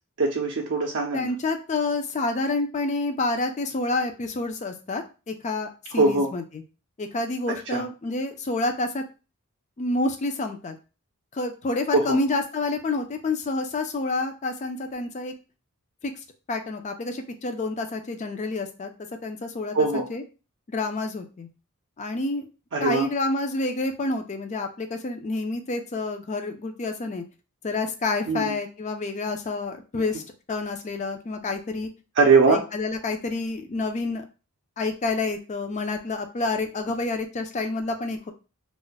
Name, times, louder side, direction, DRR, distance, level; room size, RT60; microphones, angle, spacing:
voice 1, 0.2-1.3 5.9-6.3 7.7-7.8 11.9-12.2 19.7-20.1 22.7-23.1 28.3-28.6 32.2-32.6, right 4 dB, 55° right, -1 dB, 0.5 m, -21 dB
voice 2, 1.1-6.4 7.0-9.0 9.8-10.8 11.3-15.3 16.0-16.1 16.5-18.9 19.2-19.8 20.1-20.2 20.7-21.5 22.0-22.5 22.8-27.2 27.6-30.2 30.5-31.9 32.5-34.2 34.8-38.3, left 3 dB, 30° left, 6 dB, 0.4 m, -28 dB
2.4 x 2.1 x 3.9 m, 0.32 s
head